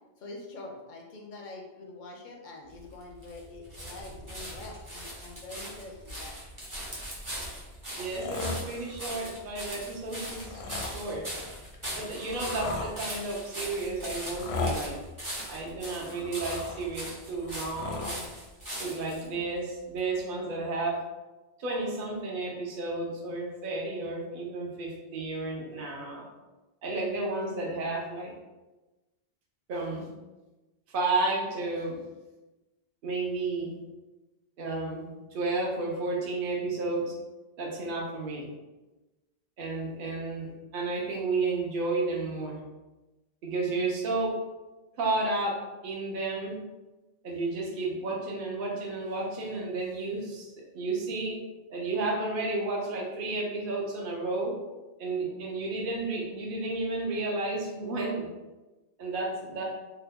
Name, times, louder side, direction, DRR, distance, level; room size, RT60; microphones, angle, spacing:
voice 1, 0.2-6.4, left 2 dB, 60° left, 0 dB, 0.6 m, -45 dB
sound 1, 2.7-19.3 20.0-20.1, equal, 20° right, 0.7 m, -40 dB
sound 2, 8.0-9.1 10.2-11.0 11.7-13.0 14.2-14.8 15.8-16.9 17.3-18.2 19.2-19.3, left 3 dB, 85° left, 0.8 m, -36 dB
voice 2, 8.0-11.2 12.0-14.9 15.5-18.2 18.8-20.9 21.6-26.3 26.8-28.3 29.7-30.1 30.9-32.0 33.0-33.8 34.6-37.2 37.6-38.5 39.6-42.6 43.4-44.3 45.0-45.6 45.8-46.6 47.2-51.4 51.7-54.5 55.0-58.3 59.0-59.6, right 3 dB, 60° right, -2 dB, 0.8 m, -32 dB
2.9 x 2.1 x 3.4 m, 1.1 s
omnidirectional pair, 1.1 m